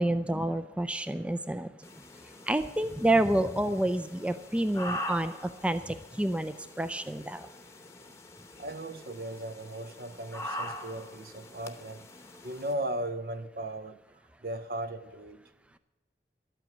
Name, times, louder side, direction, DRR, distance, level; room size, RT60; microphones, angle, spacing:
voice 1, 0.0-1.7 2.5-5.3 5.6-7.4, right 1 dB, 5° right, 0.3 m, -28 dB
sound 1, 1.8-12.7, left 1 dB, 15° left, 0.9 m, -43 dB
voice 2, 8.6-12.1 12.4-14.0 14.4-15.4, right 1 dB, 55° right, 0.7 m, -37 dB
12.5 x 9.0 x 7.2 m
head